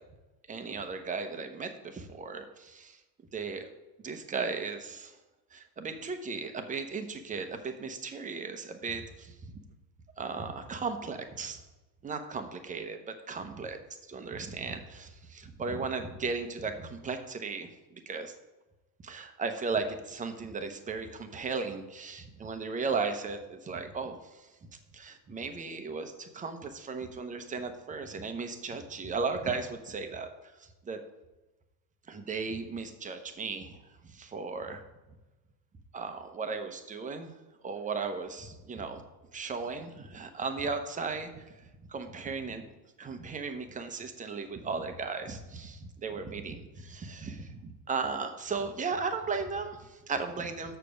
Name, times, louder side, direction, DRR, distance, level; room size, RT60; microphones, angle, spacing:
voice 1, 0.5-3.0 3.3-3.7 4.0-5.2 5.5-9.5 10.2-11.6 12.0-13.8 14.1-18.3 19.0-24.5 24.9-31.0 32.1-33.8 34.0-34.8 35.9-37.3 37.6-39.0 39.3-42.6 43.0-50.8, right 4 dB, 20° right, 7 dB, 0.8 m, -36 dB
6.7 x 6.7 x 5.1 m, 1.1 s
supercardioid pair, 125°, 41 cm